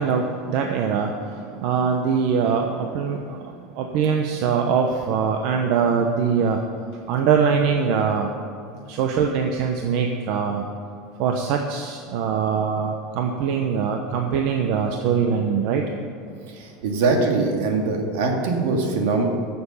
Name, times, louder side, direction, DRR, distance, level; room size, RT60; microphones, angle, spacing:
voice 1, 0.0-6.6 7.1-8.3 8.9-10.6 11.2-15.8, right 6 dB, 55° right, 3 dB, 0.9 m, -23 dB
voice 2, 16.5-19.2, right 3 dB, 75° right, 2 dB, 2.2 m, -22 dB
15.5 x 7.0 x 5.6 m, 2.4 s
supercardioid pair, 160°, 0 cm